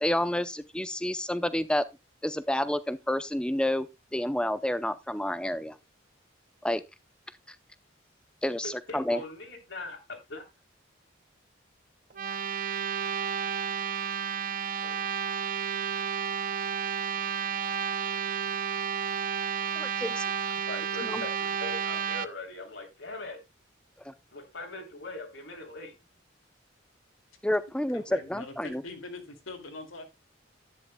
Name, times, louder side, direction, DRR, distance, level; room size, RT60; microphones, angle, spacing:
voice 1, 0.0-1.8 2.2-3.9 4.1-5.8 6.6-6.8 8.4-9.2 19.8-20.2 21.0-21.3 24.0-24.1 27.4-28.8, left 1 dB, 5° left, 0.5 m, -29 dB
voice 2, 8.6-10.4 14.8-15.0 20.7-23.4 24.3-25.9, left 2 dB, 65° left, 3.2 m, -41 dB
sound 1, 12.1-22.3, right 7 dB, 45° right, 0.5 m, -31 dB
voice 3, 27.9-30.0, left 3 dB, 90° left, 2.4 m, -43 dB
11.0 x 9.9 x 2.2 m
head